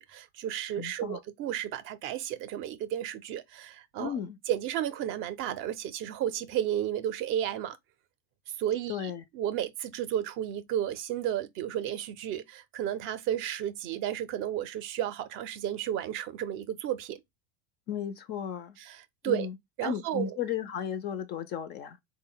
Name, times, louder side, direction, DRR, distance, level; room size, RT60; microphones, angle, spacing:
voice 1, 0.0-4.2 4.5-7.8 8.6-17.2 18.8-19.5 19.8-20.3, right 11 dB, 40° right, 0.5 m, -33 dB
voice 2, 0.8-1.2 4.0-4.4 8.9-9.2 17.9-18.8 19.2-19.6 19.8-22.0, left 8 dB, 30° left, 0.4 m, -34 dB
3.7 x 2.1 x 3.7 m
supercardioid pair, 135°, 33 cm